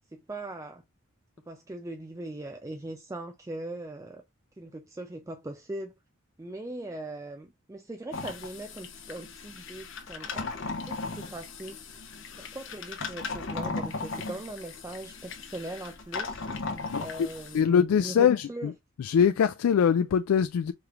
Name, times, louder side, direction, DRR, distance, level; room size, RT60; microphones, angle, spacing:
voice 1, 0.1-0.8 1.5-4.2 4.6-5.9 6.4-10.5 10.8-12.0 12.4-16.4 17.0-18.7, right 1 dB, 15° right, 0.4 m, -40 dB
sound 1, 8.1-17.6, left 3 dB, 60° left, 0.9 m, -37 dB
voice 2, 16.9-17.3 17.5-18.7 19.0-20.7, left 7 dB, 85° left, 0.3 m, -23 dB
4.8 x 3.1 x 2.4 m
head